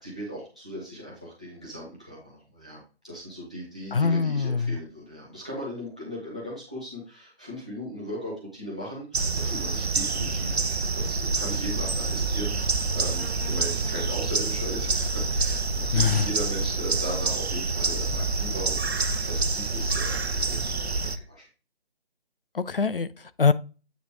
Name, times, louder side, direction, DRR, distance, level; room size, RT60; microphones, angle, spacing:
voice 1, 0.0-2.8 3.0-10.6 10.9-18.9 19.3-21.4, equal, 5° right, 0.6 m, -38 dB
voice 2, 3.9-4.8 15.9-16.3 22.5-23.5, left 5 dB, 60° left, 0.4 m, -23 dB
sound 1, 9.1-21.2, right 3 dB, 75° right, 0.7 m, -27 dB
8.1 x 3.1 x 4.9 m
figure-of-eight pair, 150°, 32 cm